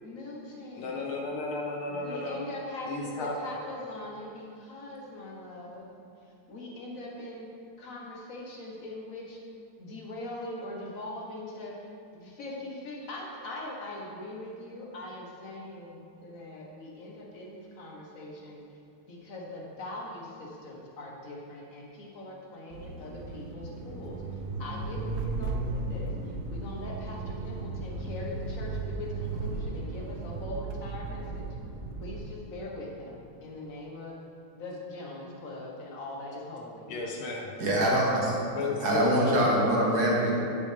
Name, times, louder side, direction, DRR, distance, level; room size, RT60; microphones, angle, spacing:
voice 1, 0.0-1.1 1.8-6.0 6.5-7.5 7.8-9.4 9.8-11.9 12.1-18.6 19.1-24.2 24.6-26.1 26.5-31.5 32.0-34.1 34.5-36.9, left 1 dB, 45° left, -2 dB, 1.4 m, -41 dB
voice 2, 0.7-2.4 2.9-3.4 36.9-37.5 38.6-39.5, left 3 dB, 85° left, -1 dB, 2.1 m, -33 dB
sound 1, 22.7-32.3, right 3 dB, 70° right, 0.9 m, -35 dB
voice 3, 37.6-38.3 38.8-40.3, right 1 dB, 50° right, -4 dB, 1.9 m, -24 dB
10.5 x 6.7 x 3.3 m, 2.5 s
omnidirectional pair, 2.3 m